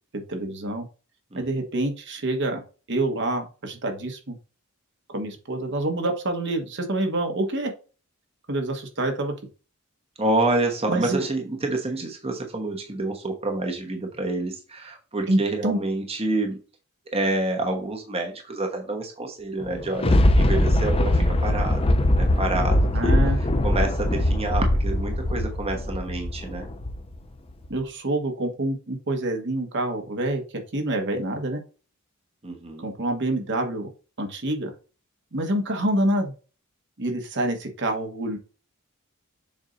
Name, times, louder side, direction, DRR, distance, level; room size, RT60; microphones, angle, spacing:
voice 1, 0.1-0.8 1.3-2.6 2.9-4.4 5.1-7.7 8.5-9.3 10.9-11.2 15.3-15.8 22.9-23.4 27.7-30.4 30.7-31.6 32.8-33.9 34.2-34.7 35.3-36.3 37.0-38.4, right 1 dB, 55° right, 4 dB, 1.4 m, -27 dB
voice 2, 10.2-16.6 17.1-21.8 22.2-23.1 23.6-26.6 32.4-32.9, right 2 dB, 30° right, 2 dB, 1.1 m, -28 dB
Thunder, 19.6-27.2 27.6-27.7, left 1 dB, 25° left, 0.6 m, -21 dB
7.2 x 2.7 x 5.1 m, 0.34 s
head